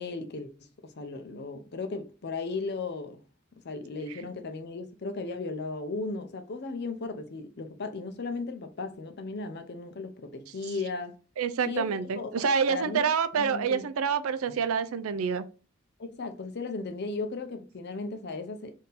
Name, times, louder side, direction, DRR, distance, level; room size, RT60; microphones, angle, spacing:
voice 1, 0.0-3.2 3.6-11.1 11.7-11.9 12.2-13.0 13.4-13.8 14.5-14.6 16.0-18.7, left 3 dB, 50° left, 0.6 m, -36 dB
voice 2, 11.4-15.4, right 6 dB, 75° right, 0.4 m, -27 dB
3.7 x 2.7 x 4.0 m
head